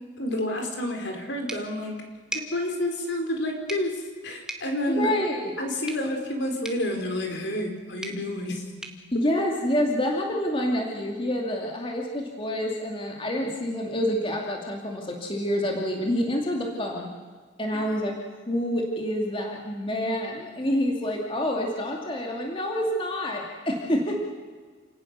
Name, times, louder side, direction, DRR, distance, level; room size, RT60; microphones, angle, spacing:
voice 1, 0.2-2.0 2.3-5.1 5.6-8.7 9.4-9.5, left 1 dB, 60° left, 4 dB, 4.3 m, -29 dB
sound 1, 1.5-10.2, right 1 dB, 5° right, 1.9 m, -43 dB
voice 2, 4.9-5.5 9.1-17.1 17.6-18.1 18.5-24.2, equal, 25° left, 0 dB, 2.6 m, -27 dB
28.5 x 18.5 x 6.8 m, 1.5 s
head